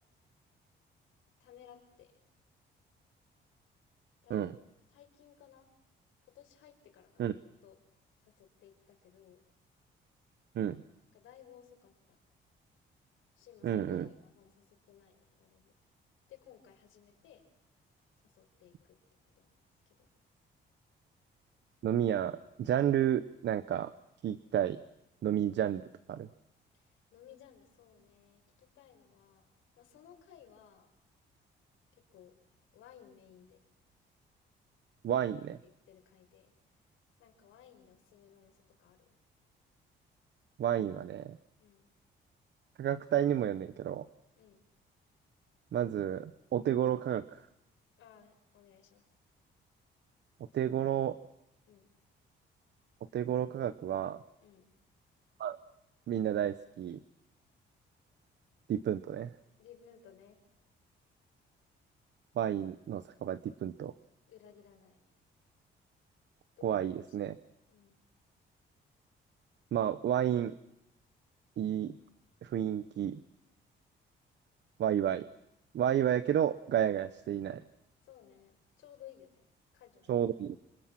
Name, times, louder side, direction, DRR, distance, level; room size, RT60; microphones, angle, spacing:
voice 1, 1.4-2.1 4.2-4.5 4.9-5.7 6.3-7.8 8.3-9.4 11.1-12.2 13.4-15.8 16.3-17.5 18.2-19.0 19.4-19.5 20.0-20.1 26.7-29.5 29.8-30.9 31.9-32.4 32.7-33.6 35.2-35.3 35.6-36.5 37.2-39.1 41.6-41.9 44.4-44.6 48.0-49.0 50.6-51.0 51.6-51.9 54.4-54.7 59.6-60.4 64.3-65.0 66.6-67.3 67.7-68.0 78.0-79.5 79.7-80.1, left 9 dB, 85° left, 4 dB, 5.2 m, -58 dB
voice 2, 13.6-14.1 21.8-23.9 24.2-24.8 25.2-25.8 26.1-26.3 35.0-35.6 40.6-41.4 42.8-44.1 45.7-47.4 50.5-51.1 53.1-54.2 55.4-55.6 56.1-57.0 58.7-59.3 62.3-63.9 66.6-67.3 69.7-70.5 71.6-72.0 72.4-73.2 74.8-75.3 75.7-77.6 80.1-80.6, right 10 dB, 65° right, 14 dB, 0.9 m, -31 dB
27.0 x 26.0 x 6.0 m, 0.89 s
cardioid pair, 90°, 20 cm